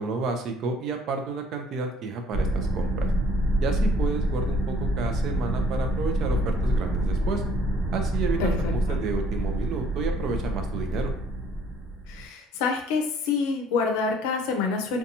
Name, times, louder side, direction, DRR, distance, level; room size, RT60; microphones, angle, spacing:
voice 1, 0.0-3.1 3.6-7.4 7.9-8.5 8.9-11.1, right 4 dB, 45° right, 5 dB, 0.4 m, -31 dB
sound 1, 2.3-12.2, right 1 dB, 80° right, 0.8 m, -26 dB
voice 2, 8.4-9.0 12.1-15.0, left 4 dB, 80° left, 3 dB, 0.5 m, -27 dB
2.7 x 2.2 x 2.6 m, 0.63 s
cardioid pair, 160°, 0 cm